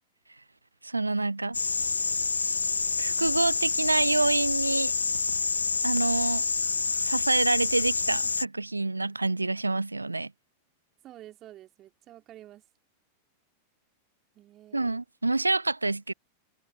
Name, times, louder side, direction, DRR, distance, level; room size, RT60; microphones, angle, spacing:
voice 1, 0.8-1.6 3.0-4.9 5.8-6.4 7.0-10.3 14.7-16.1, right 2 dB, 80° right, 0.4 m, -27 dB
sound 1, 1.5-8.4, left 4 dB, 75° left, 0.4 m, -27 dB
voice 2, 11.0-12.6 14.3-15.0, right 13 dB, 35° right, 2.6 m, -49 dB
figure-of-eight pair, 90°, 0 cm